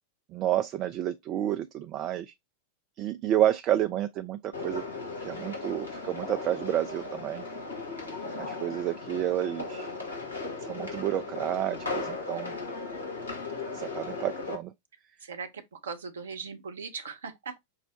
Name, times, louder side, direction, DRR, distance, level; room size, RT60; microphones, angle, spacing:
voice 1, 0.3-2.3 3.0-4.8 5.2-7.5 8.4-9.9 10.6-12.6 13.7-14.7, right 12 dB, 35° right, 0.3 m, -30 dB
sound 1, 4.5-14.6, left 3 dB, 75° left, 1.7 m, -37 dB
voice 2, 15.2-17.6, right 5 dB, 65° right, 0.7 m, -39 dB
5.6 x 2.0 x 3.9 m
figure-of-eight pair, 90°, 0 cm